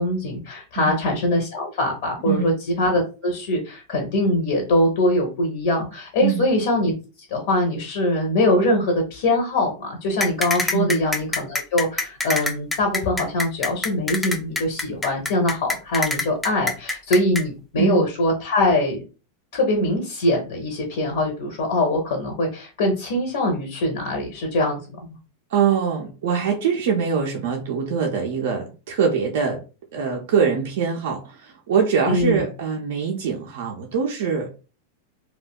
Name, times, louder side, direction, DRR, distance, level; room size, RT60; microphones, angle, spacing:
voice 1, 0.0-6.9 7.3-19.0 19.5-24.8 32.1-32.4, left 1 dB, 55° left, 2 dB, 0.6 m, -22 dB
sound 1, 10.2-17.4, left 2 dB, 10° left, 0.3 m, -25 dB
voice 2, 25.5-29.6 29.9-34.5, right 6 dB, 55° right, 1 dB, 0.4 m, -23 dB
2.7 x 2.1 x 2.3 m, 0.34 s
figure-of-eight pair, 90°, 0 cm